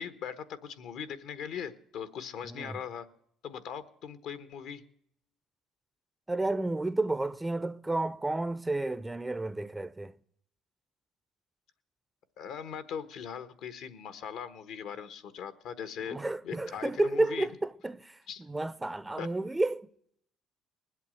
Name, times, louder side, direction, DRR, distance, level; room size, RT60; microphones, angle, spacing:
voice 1, 0.0-3.1 3.4-4.8 12.4-16.2 16.4-17.5 18.3-18.4 19.2-19.3, left 7 dB, 75° left, 1.2 m, -40 dB
voice 2, 2.4-2.8 6.3-10.2 16.1-19.9, right 2 dB, 15° right, 0.5 m, -31 dB
20.0 x 8.2 x 7.6 m
cardioid pair, 95°, 0 cm